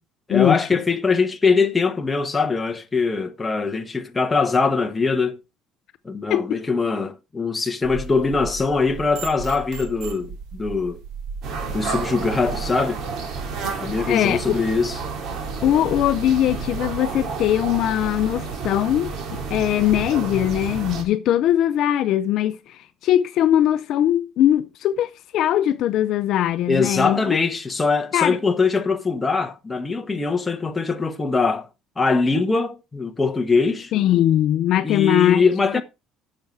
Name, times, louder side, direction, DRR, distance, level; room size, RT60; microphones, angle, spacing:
voice 1, 0.3-5.4 6.0-11.0 11.7-13.0 13.8-15.0 26.7-31.7 32.0-33.9 34.8-35.8, left 4 dB, 10° left, 1.1 m, -22 dB
sound 1, 7.8-12.7, right 5 dB, 70° right, 2.2 m, -36 dB
sound 2, 11.4-21.0, right 5 dB, 50° right, 2.9 m, -30 dB
voice 2, 14.0-14.6 15.6-19.1 19.5-27.4 28.1-28.4 33.9-35.4 35.7-35.8, left 11 dB, 50° left, 0.5 m, -20 dB
10.5 x 6.6 x 4.6 m
cardioid pair, 170°, 0 cm